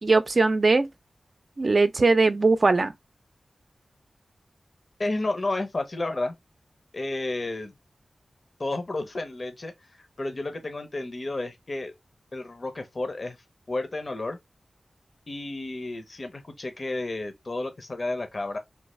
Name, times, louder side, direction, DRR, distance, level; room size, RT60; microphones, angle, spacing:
voice 1, 0.0-0.9 1.6-2.9, right 3 dB, 50° right, 0.4 m, -20 dB
voice 2, 5.0-6.3 6.9-7.7 8.6-9.7 10.2-11.9 12.3-13.4 13.7-14.4 15.3-18.6, left 2 dB, 50° left, 0.6 m, -31 dB
3.2 x 2.3 x 3.1 m
wide cardioid pair, 65°, 0 cm